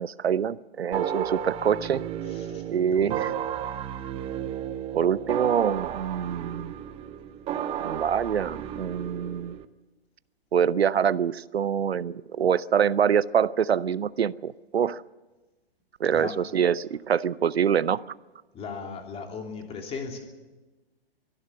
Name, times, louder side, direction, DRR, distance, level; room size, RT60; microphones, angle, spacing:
voice 1, 0.0-2.0 2.7-3.3 4.9-6.7 7.8-9.5 10.5-15.0 16.0-18.0, right 8 dB, 80° right, 20 dB, 0.6 m, -25 dB
sound 1, 0.9-9.6, right 10 dB, 20° right, 0.8 m, -33 dB
voice 2, 2.3-2.6 2.9-3.3 16.1-16.3 18.5-20.2, left 5 dB, 20° left, 3 dB, 3.1 m, -37 dB
24.0 x 12.0 x 9.7 m, 1.2 s
figure-of-eight pair, 120°, 31 cm